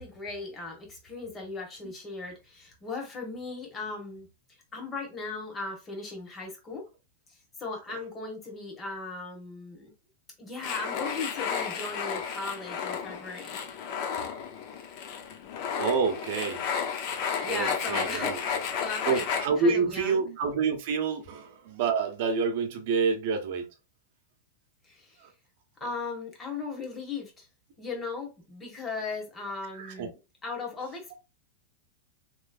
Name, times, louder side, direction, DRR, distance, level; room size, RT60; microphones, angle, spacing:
voice 1, 0.0-4.3 4.7-6.8 7.6-9.9 10.4-13.6 17.4-19.3 19.6-20.2 24.8-25.2 25.8-27.5 27.8-31.1, left 4 dB, 20° left, 1.4 m, -37 dB
sound 1, 10.6-19.5, left 7 dB, 45° left, 0.7 m, -32 dB
voice 2, 15.8-16.6 17.4-18.4 19.1-23.7 29.8-30.1, right 5 dB, 55° right, 0.9 m, -28 dB
3.2 x 3.1 x 2.5 m
supercardioid pair, 140°, 0 cm